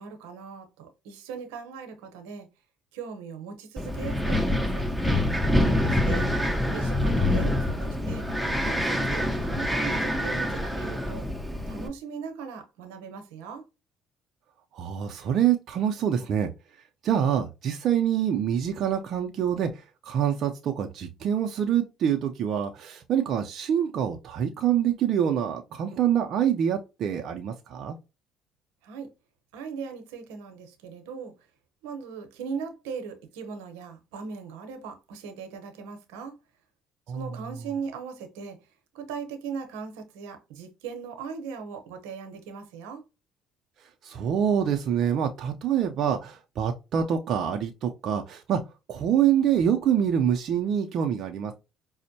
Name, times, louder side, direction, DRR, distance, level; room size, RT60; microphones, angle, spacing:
voice 1, 0.0-2.5 2.9-4.9 5.8-6.3 6.7-8.3 8.6-11.3 11.7-13.6 28.8-29.1 29.5-31.3 31.8-36.3 37.1-38.6 38.9-43.0, right 5 dB, 90° right, 0.8 m, -38 dB
Wind, 3.8-11.9, left 1 dB, ahead, 0.8 m, -26 dB
voice 2, 5.6-6.0 14.7-16.5 17.0-28.0 37.1-37.3 44.0-48.6 48.9-51.5, right 9 dB, 60° right, 0.4 m, -26 dB
5.1 x 2.1 x 2.7 m
supercardioid pair, 75°, 0 cm